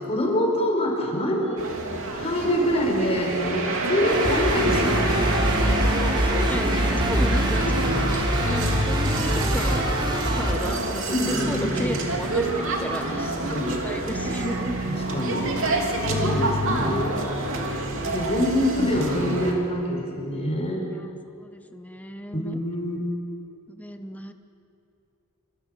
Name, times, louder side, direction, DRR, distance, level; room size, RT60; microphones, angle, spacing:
voice 1, 0.0-1.6 2.1-5.2 7.6-7.8 11.1-12.0 13.1-13.8 14.9-15.5 16.1-17.2 18.0-20.8 22.3-23.0, equal, 30° left, -1 dB, 5.4 m, -25 dB
sound 1, 1.6-19.5, right 2 dB, 65° right, 3.3 m, -27 dB
sound 2, 4.0-10.5, equal, 25° right, 3.3 m, -25 dB
voice 2, 5.6-7.6 7.9-9.8 10.1-14.8 21.0-21.1 21.4-22.6 23.7-24.3, left 1 dB, 5° left, 7 dB, 0.9 m, -34 dB
27.0 x 25.0 x 6.7 m, 2.6 s
head